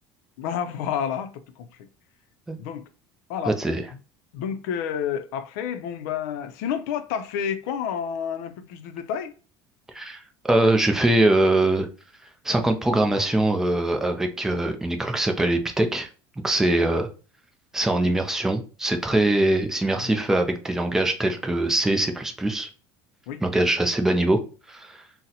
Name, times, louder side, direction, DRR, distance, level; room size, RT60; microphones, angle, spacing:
voice 1, 0.4-1.7 2.6-2.9 3.3-3.6 4.3-9.3 14.5-14.6 20.0-20.2 23.3-23.4, left 8 dB, 85° left, 0.5 m, -30 dB
voice 2, 3.5-3.8 9.9-11.9 12.4-16.1 16.4-17.1 17.7-22.7 23.4-24.4 24.7-25.0, right 1 dB, 5° right, 0.4 m, -22 dB
3.9 x 2.1 x 2.7 m
cardioid pair, 160°, 9 cm